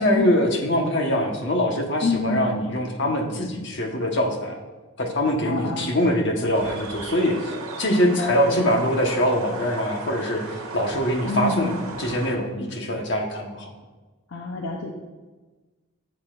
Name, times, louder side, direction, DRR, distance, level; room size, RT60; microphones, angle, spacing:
voice 1, 0.0-4.6 5.0-10.4 10.7-13.7, equal, 55° left, 2 dB, 1.2 m, -23 dB
voice 2, 2.0-2.5 5.4-6.0 8.1-8.8 11.2-11.8 14.3-14.9, left 2 dB, 70° left, 0 dB, 0.7 m, -27 dB
sound 1, 6.5-12.4, right 3 dB, 85° right, 1.3 m, -36 dB
11.5 x 7.3 x 2.5 m, 1.2 s
head